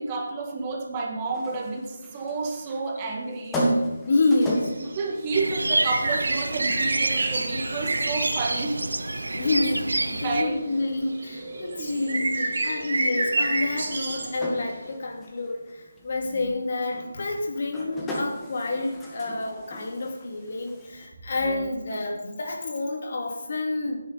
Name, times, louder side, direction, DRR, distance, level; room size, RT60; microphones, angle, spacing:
voice 1, 0.0-3.7 4.8-8.9 10.1-10.6 11.7-11.9 16.2-16.5 21.4-21.7, right 3 dB, 25° right, 1 dB, 2.0 m, -30 dB
sound 1, 1.3-21.1, right 1 dB, 10° left, 1.8 m, -37 dB
voice 2, 4.1-4.7 9.3-9.9 10.2-24.0, left 2 dB, 50° left, 2 dB, 2.8 m, -28 dB
sound 2, 4.4-9.9 10.2-14.9, right 2 dB, 55° right, 2.6 m, -30 dB
sound 3, 5.3-10.4, right 2 dB, 75° right, 0.9 m, -29 dB
14.5 x 9.9 x 4.2 m, 1.0 s
figure-of-eight pair, 155°, 0 cm